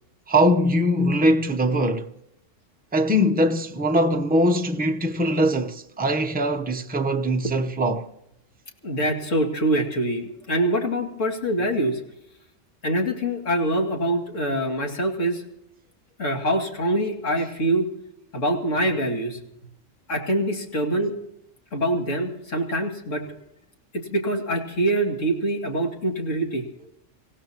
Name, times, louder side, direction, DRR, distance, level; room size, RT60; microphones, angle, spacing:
voice 1, 0.3-2.1 2.9-8.1, equal, 10° right, 0.6 m, -21 dB
voice 2, 8.8-12.0 12.8-15.4 16.2-17.9 18.3-19.4 20.1-21.2 21.7-23.2 23.9-26.6, right 1 dB, 70° left, 2.8 m, -24 dB
26.0 x 16.0 x 2.9 m
omnidirectional pair, 1.4 m